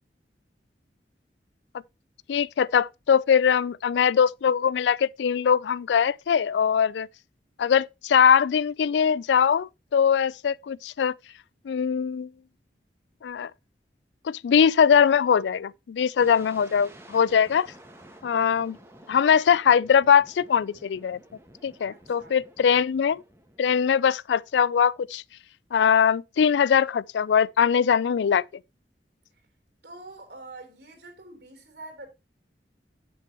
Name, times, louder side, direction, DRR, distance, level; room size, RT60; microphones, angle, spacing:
voice 1, 2.3-7.1 7.6-11.1 11.7-12.3 13.2-13.5 14.2-17.7 18.2-18.8 19.1-21.2 21.6-23.2 23.6-25.2 25.7-28.4, left 7 dB, 85° left, 0.3 m, -21 dB
sound 1, 16.2-24.0, right 1 dB, 15° right, 1.5 m, -51 dB
voice 2, 21.9-22.4 29.8-32.1, right 2 dB, 70° right, 3.6 m, -45 dB
9.3 x 7.6 x 2.9 m
head